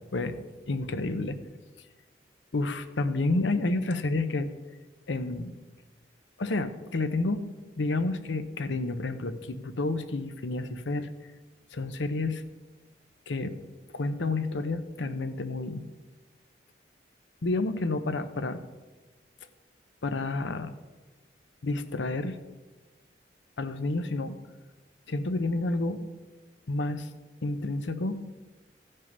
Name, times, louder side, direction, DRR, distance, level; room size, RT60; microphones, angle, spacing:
voice 1, 0.1-1.4 2.5-4.5 5.1-5.5 6.4-7.4 7.8-11.1 11.7-12.4 13.3-13.6 13.9-15.8 17.4-18.6 20.0-20.7 21.6-22.4 23.6-24.4 25.1-26.1 26.7-27.1 27.4-28.2, left 2 dB, 85° left, 10 dB, 0.7 m, -30 dB
15.0 x 5.4 x 5.4 m, 1.2 s
head